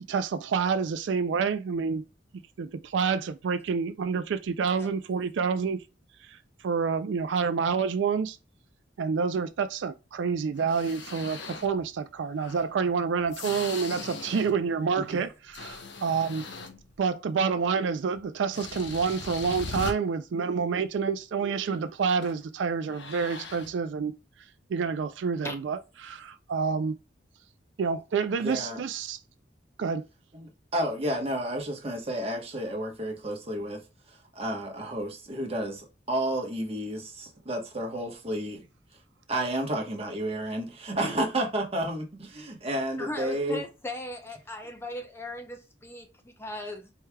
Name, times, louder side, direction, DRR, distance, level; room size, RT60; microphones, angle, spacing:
voice 1, 0.1-2.0 2.6-5.8 6.3-6.4 6.6-8.4 9.0-16.4 17.0-24.1 24.7-26.9 27.8-29.2 29.8-30.0, right 5 dB, 75° right, 0.4 m, -28 dB
sound 1, 10.6-11.8 12.4-14.7 15.0-17.0 18.1-18.2 18.5-19.9 22.2-22.4 22.8-23.7, left 4 dB, 70° left, 0.8 m, -40 dB
voice 2, 28.4-28.8 30.3-33.8 34.1-38.6 39.3-43.6, right 1 dB, 30° right, 1.1 m, -31 dB
voice 3, 43.0-46.9, left 1 dB, 15° left, 0.6 m, -38 dB
4.6 x 3.2 x 2.2 m
head